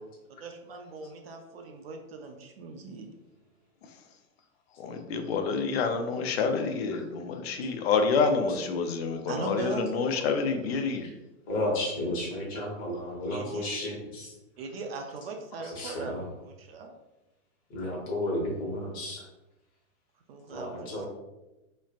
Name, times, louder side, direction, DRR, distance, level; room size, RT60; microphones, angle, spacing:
voice 1, 0.4-3.1 9.3-10.2 13.3-13.6 14.6-16.9 20.3-21.0, right 3 dB, 45° right, 4 dB, 0.5 m, -39 dB
voice 2, 4.8-11.0, left 5 dB, 50° left, 5 dB, 0.5 m, -28 dB
voice 3, 11.5-14.3 15.7-16.3 17.7-19.2 20.5-21.1, left 1 dB, 20° left, -3 dB, 0.9 m, -32 dB
4.1 x 3.2 x 2.4 m, 1.0 s
hypercardioid pair, 150°, 42 cm